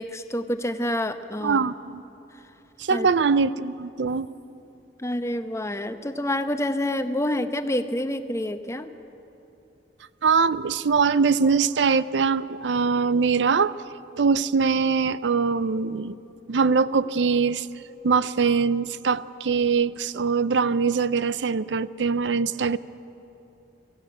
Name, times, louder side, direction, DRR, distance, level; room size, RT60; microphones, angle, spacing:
voice 1, 0.0-1.6 2.9-3.1 5.0-8.9, left 1 dB, 15° left, 9 dB, 0.8 m, -28 dB
voice 2, 1.4-2.0 2.8-4.3 10.2-13.8 14.2-16.2 16.5-17.7 18.0-22.8, right 5 dB, 80° right, 16 dB, 0.5 m, -22 dB
24.0 x 15.5 x 8.9 m, 2.9 s
head